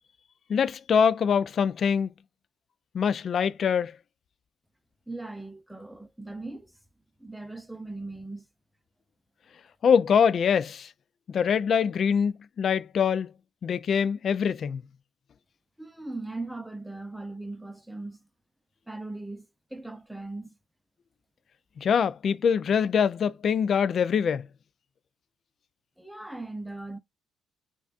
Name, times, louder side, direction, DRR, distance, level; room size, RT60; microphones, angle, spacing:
voice 1, 0.5-2.1 2.9-3.9 9.8-10.9 11.3-13.3 13.6-14.8 21.8-24.5, left 7 dB, 50° left, 0.3 m, -24 dB
voice 2, 5.1-6.8 7.2-8.5 15.8-18.2 18.9-20.5 26.0-27.0, right 2 dB, ahead, 0.5 m, -39 dB
4.7 x 2.3 x 2.5 m
cardioid pair, 95°, 0 cm